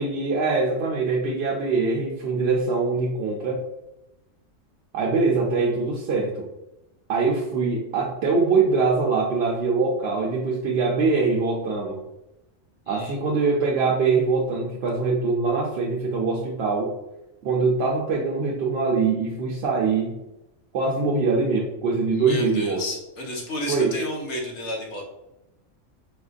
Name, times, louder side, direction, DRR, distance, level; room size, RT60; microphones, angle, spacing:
voice 1, 0.0-3.6 4.9-6.4 7.1-12.0 12.9-16.9 17.4-20.1 20.7-22.8 23.7-24.0, right 4 dB, 60° right, -2 dB, 0.7 m, -23 dB
voice 2, 12.9-13.2 22.1-25.0, left 1 dB, 65° left, -1 dB, 1.1 m, -31 dB
4.3 x 2.5 x 2.4 m, 0.93 s
omnidirectional pair, 1.3 m